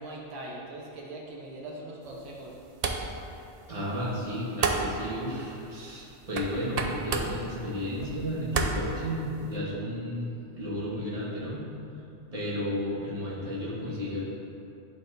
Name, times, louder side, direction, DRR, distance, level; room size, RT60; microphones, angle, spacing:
voice 1, 0.0-2.6, right 1 dB, 85° right, -3 dB, 1.2 m, -41 dB
sound 1, 2.0-9.6, right 4 dB, 55° right, 0.4 m, -34 dB
voice 2, 3.7-10.3 10.5-11.6 12.3-14.2, equal, 30° right, -7 dB, 1.4 m, -33 dB
11.0 x 4.1 x 2.6 m, 2.7 s
omnidirectional pair, 1.2 m